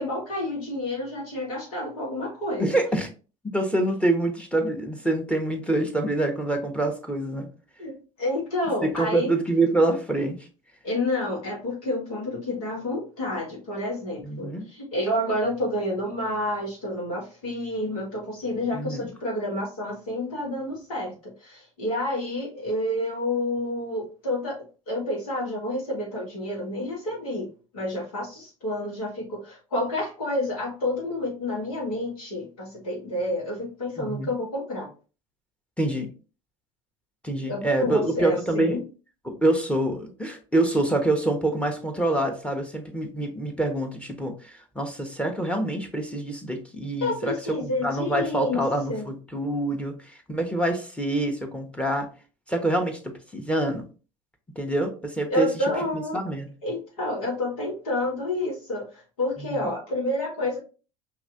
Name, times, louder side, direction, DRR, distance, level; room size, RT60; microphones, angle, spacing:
voice 1, 0.0-2.8 7.8-9.3 10.8-24.6 24.9-27.5 27.7-34.9 37.5-38.8 47.0-48.6 48.9-49.1 55.3-56.2 56.6-60.6, left 1 dB, 80° left, -2 dB, 2.0 m, -29 dB
voice 2, 2.6-3.1 3.5-7.5 8.8-10.5 14.2-14.6 18.7-19.1 34.0-34.3 35.8-36.1 37.2-38.8 39.2-47.3 47.6-52.1 52.5-53.8 54.5-55.5 55.9-56.5 59.5-59.7, right 1 dB, 5° left, 4 dB, 1.2 m, -26 dB
5.5 x 3.0 x 2.6 m, 0.34 s
hypercardioid pair, 65°, 18 cm